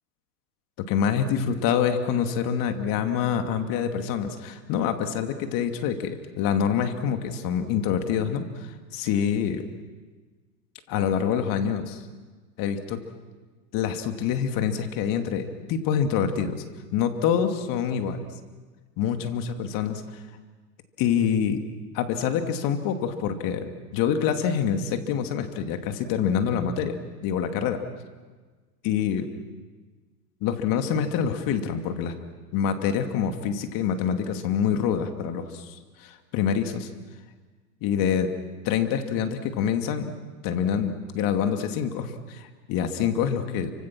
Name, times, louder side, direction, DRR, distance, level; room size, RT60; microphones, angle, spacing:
voice 1, 0.8-9.6 10.9-12.0 12.6-13.0 13.7-16.6 16.9-18.3 19.0-20.0 21.0-21.6 21.9-27.8 28.8-29.3 30.4-32.1 32.5-36.9 37.8-38.3 38.6-40.1 40.4-43.7, left 8 dB, 40° left, 7 dB, 2.6 m, -26 dB
29.5 x 25.5 x 6.1 m, 1.4 s
hypercardioid pair, 120°, 49 cm